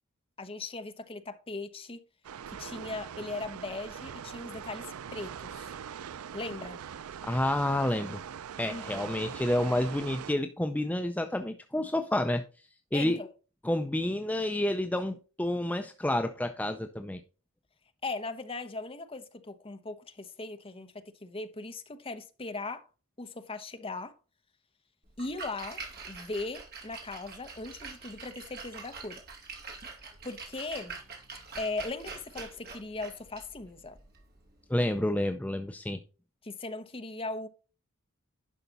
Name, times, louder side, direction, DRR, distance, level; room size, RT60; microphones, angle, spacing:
voice 1, 0.4-2.0 2.5-5.7 6.3-6.8 8.7-9.1 12.9-13.3 18.0-22.9 23.2-24.1 25.2-29.2 30.2-31.0 31.6-34.0 36.4-37.5, left 3 dB, 25° left, 0.9 m, -39 dB
sound 1, 2.2-10.3, right 8 dB, 75° right, 0.4 m, -42 dB
voice 2, 7.2-8.2 8.6-13.2 13.6-17.2 34.7-36.0, left 1 dB, 5° left, 0.4 m, -29 dB
Splash splatter, 25.1-35.0, right 4 dB, 45° right, 2.8 m, -45 dB
11.0 x 5.7 x 4.0 m
head